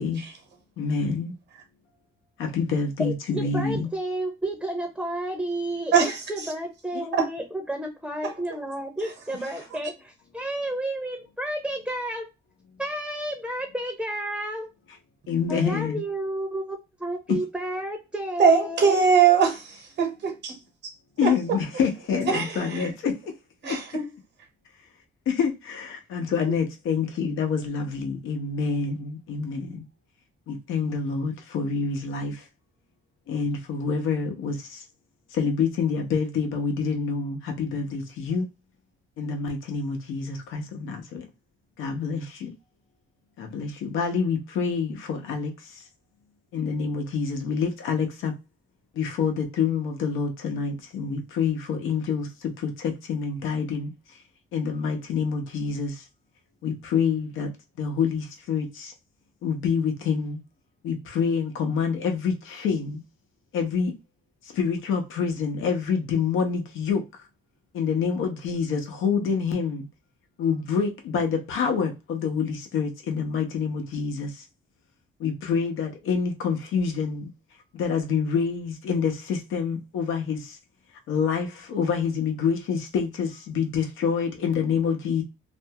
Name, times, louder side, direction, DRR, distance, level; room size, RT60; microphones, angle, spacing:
voice 1, 0.8-1.3 2.4-3.9 6.9-7.1 15.3-16.0 17.3-17.4 21.2-23.1 23.7-23.8 25.3-29.8 30.5-32.4 33.3-34.8 35.3-38.4 39.2-41.3 41.8-42.5 43.4-45.5 46.5-48.3 49.0-53.9 54.5-55.9 56.6-57.5 57.8-58.9 59.4-60.4 60.8-63.0 63.5-63.9 64.5-67.0 67.7-69.9 70.4-74.3 75.2-77.3 77.7-80.5 81.1-85.2, left 6 dB, 85° left, 0.8 m, -27 dB
voice 2, 3.0-12.3 12.8-14.7 15.5-18.9 26.5-26.6, right 1 dB, 5° right, 0.7 m, -31 dB
voice 3, 5.9-6.5 7.2-7.3 8.2-8.6 9.0-9.1 18.4-20.5 21.2-21.3 22.2-22.9 23.6-24.1, right 6 dB, 60° right, 1.1 m, -22 dB
2.6 x 2.3 x 2.7 m
cardioid pair, 90°, 20 cm